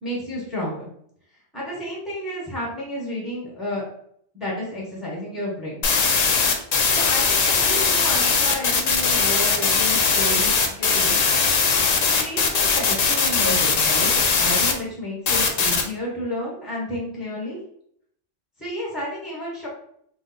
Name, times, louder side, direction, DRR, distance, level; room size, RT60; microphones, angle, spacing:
voice 1, 0.0-0.9 1.5-3.9 4.3-5.8 6.9-11.3 12.0-14.1 14.4-17.6 18.6-19.7, left 1 dB, ahead, -5 dB, 0.9 m, -31 dB
sound 1, 5.8-14.7 15.3-15.8, left 5 dB, 75° left, 0.3 m, -20 dB
2.5 x 2.3 x 4.0 m, 0.69 s
omnidirectional pair, 1.3 m